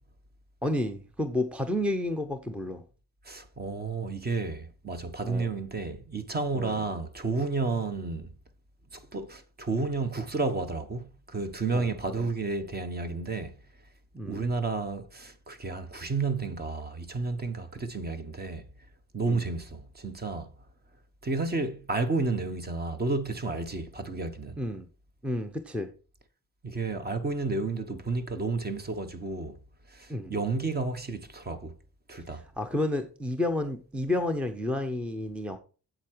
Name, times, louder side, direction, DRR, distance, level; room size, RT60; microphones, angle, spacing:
voice 1, 0.6-2.8 5.2-5.5 6.5-6.8 11.7-11.9 12.2-12.3 14.1-14.5 19.3-19.5 24.6-24.9 25.2-25.9 30.1-30.3 32.6-35.6, left 1 dB, 5° right, 0.7 m, -31 dB
voice 2, 3.2-8.3 8.9-13.6 14.2-18.7 19.1-20.5 21.2-24.6 26.6-29.6 29.9-31.8 32.1-32.4, right 3 dB, 25° right, 1.1 m, -31 dB
8.3 x 7.8 x 4.5 m
cardioid pair, 155°, 38 cm